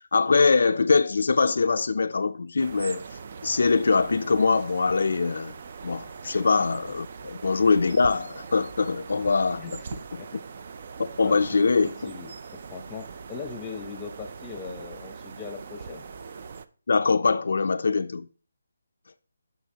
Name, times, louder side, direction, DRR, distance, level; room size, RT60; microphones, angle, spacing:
voice 1, 0.1-3.0 3.4-5.5 5.8-9.6 11.2-12.1 16.9-18.3, left 4 dB, 60° left, 0.4 m, -23 dB
sound 1, 2.6-16.7, right 5 dB, 35° right, 0.4 m, -41 dB
voice 2, 11.2-16.1, left 5 dB, 10° left, 0.7 m, -40 dB
10.0 x 5.7 x 2.8 m
hypercardioid pair, 175°, 0 cm